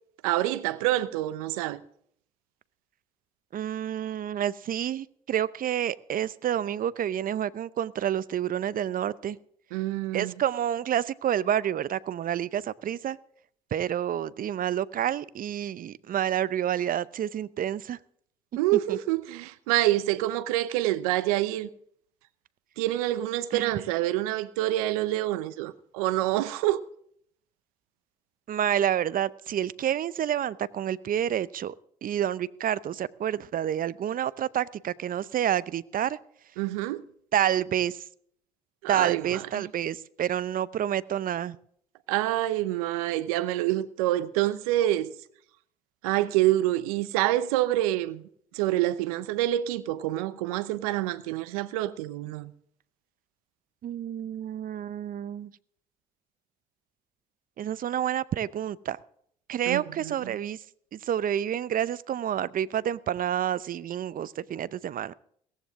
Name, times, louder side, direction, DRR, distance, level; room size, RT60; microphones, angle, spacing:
voice 1, 0.2-1.8 9.7-10.3 18.6-21.7 22.8-26.8 36.6-37.0 38.8-39.7 42.1-45.1 46.0-48.2 48.5-52.5 59.7-60.3, right 15 dB, 85° right, 0.9 m, -27 dB
voice 2, 3.5-9.4 10.1-13.2 13.7-18.0 18.7-19.0 23.5-23.7 28.5-31.7 32.0-36.2 37.3-38.0 38.9-41.6 53.8-55.5 57.6-59.0 59.5-60.6 60.9-65.1, right 10 dB, 50° right, 0.7 m, -29 dB
17.0 x 15.0 x 3.7 m
hypercardioid pair, 55°, 18 cm